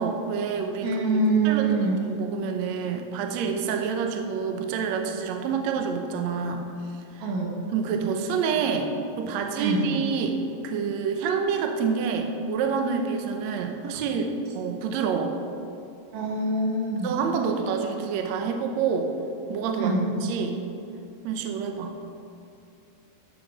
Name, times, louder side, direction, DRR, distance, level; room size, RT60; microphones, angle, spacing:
voice 1, 0.0-6.7 7.2-7.3 7.7-8.9 9.2-10.3 10.6-14.3 14.6-15.4 17.0-19.1 19.5-19.9 20.2-20.6 21.2-22.0, right 6 dB, 70° right, 4 dB, 1.8 m, -27 dB
voice 2, 0.8-2.0 7.2-7.6 9.6-9.9 16.1-17.2 19.8-20.1, right 2 dB, 90° right, -2 dB, 3.7 m, -24 dB
13.5 x 6.7 x 4.9 m, 2.7 s
omnidirectional pair, 4.0 m